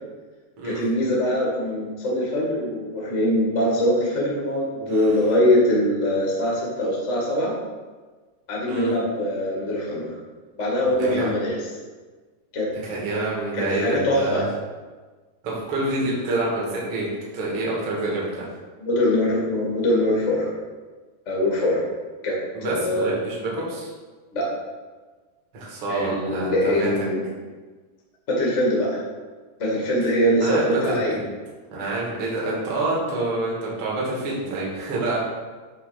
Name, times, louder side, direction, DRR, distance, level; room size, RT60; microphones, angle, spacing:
voice 1, 0.6-7.5 8.5-10.1 10.6-11.6 12.5-12.7 13.5-14.4 18.8-20.5 21.2-21.8 22.2-23.2 24.3-24.5 25.9-27.2 28.3-29.0 29.6-31.1, left 1 dB, 35° left, -4 dB, 1.1 m, -22 dB
voice 2, 4.8-5.1 8.7-8.9 10.9-11.3 12.8-14.5 15.4-17.1 17.3-18.5 22.5-23.9 25.5-26.9 30.4-31.3 31.7-35.2, right 2 dB, 45° right, -5 dB, 1.8 m, -27 dB
9.6 x 3.4 x 5.1 m, 1.4 s
omnidirectional pair, 4.7 m